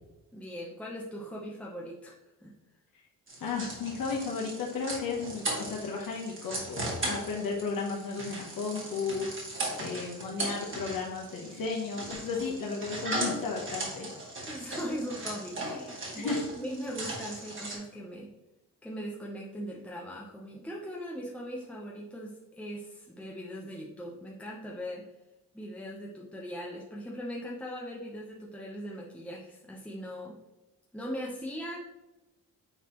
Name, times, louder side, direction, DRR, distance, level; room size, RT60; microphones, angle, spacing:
voice 1, 0.3-2.5 14.5-18.3 18.8-25.1 25.5-30.4 30.9-31.8, equal, 5° left, -4 dB, 0.8 m, -40 dB
sound 1, 3.3-17.8, right 2 dB, 35° right, 2.1 m, -38 dB
voice 2, 3.4-14.1 16.1-16.4, left 4 dB, 70° left, -2 dB, 1.1 m, -34 dB
9.3 x 4.0 x 3.0 m, 1.0 s
cardioid pair, 120°, 35 cm